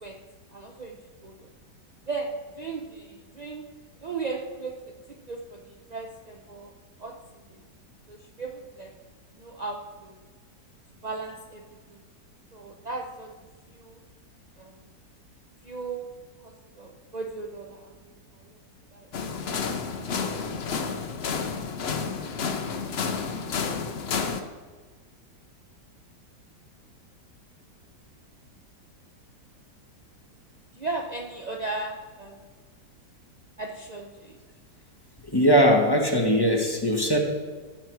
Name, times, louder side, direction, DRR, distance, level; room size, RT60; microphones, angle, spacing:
voice 1, 0.5-1.0 1.2-1.5 2.1-2.3 2.5-3.6 4.0-4.7 5.2-6.7 7.0-7.6 8.1-8.9 9.3-10.1 11.0-11.6 11.9-12.0 12.5-13.3 13.7-14.0 14.6-14.7 15.6-16.1 16.4-18.6 18.9-19.3 21.1-21.2 30.7-32.4 33.6-34.4, right 3 dB, 65° right, 1 dB, 0.4 m, -37 dB
sound 1, 19.1-24.4, left 5 dB, 50° left, 0.8 m, -30 dB
voice 2, 35.3-37.2, equal, 15° left, 1 dB, 1.1 m, -20 dB
14.5 x 5.8 x 4.6 m, 1.4 s
omnidirectional pair, 1.9 m